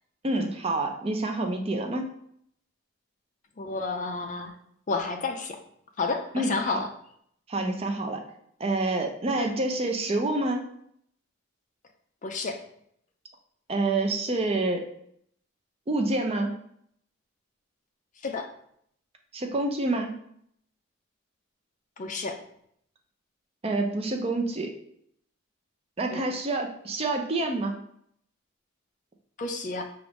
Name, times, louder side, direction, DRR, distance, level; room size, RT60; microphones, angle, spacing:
voice 1, 0.2-2.1 6.3-6.8 7.5-8.2 8.6-10.7 13.7-14.9 15.9-16.5 19.3-20.2 23.6-24.7 26.0-27.7, right 2 dB, 30° right, 4 dB, 0.5 m, -27 dB
voice 2, 3.6-4.5 4.9-5.6 6.0-6.9 9.4-9.5 12.2-12.6 18.2-18.5 22.0-22.4 26.1-26.2 29.4-29.8, left 3 dB, 40° left, 5 dB, 0.4 m, -30 dB
5.9 x 2.5 x 3.4 m, 0.68 s
head